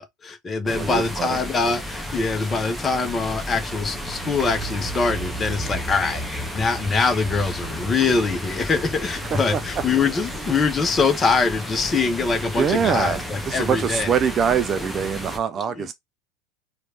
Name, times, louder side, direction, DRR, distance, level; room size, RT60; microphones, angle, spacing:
voice 1, 0.0-14.1 15.8-15.9, left 4 dB, 20° left, 1.0 m, -23 dB
sound 1, 0.7-15.4, equal, ahead, 1.0 m, -32 dB
voice 2, 0.7-1.4 9.3-9.4 12.6-15.9, right 7 dB, 30° right, 0.4 m, -24 dB
4.3 x 2.5 x 3.3 m
figure-of-eight pair, 80°, 0 cm